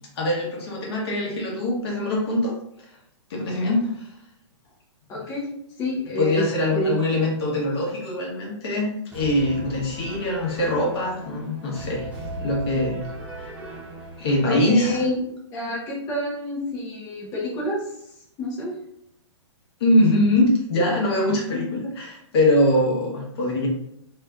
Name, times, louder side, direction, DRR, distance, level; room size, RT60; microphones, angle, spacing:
voice 1, 0.2-2.5 3.3-4.1 6.2-8.9 9.1-12.1 12.4-13.0 13.4-13.5 14.2-15.0 19.8-23.7, left 1 dB, 55° left, -3 dB, 1.1 m, -22 dB
voice 2, 5.1-5.5 5.8-6.5 6.7-7.0 14.5-15.2 15.5-17.8 18.4-18.7, left 1 dB, 20° left, -6 dB, 0.8 m, -28 dB
sound 1, 9.1-15.1, right 1 dB, 10° right, 0.6 m, -37 dB
3.2 x 2.8 x 2.3 m, 0.75 s
hypercardioid pair, 145°, 15 cm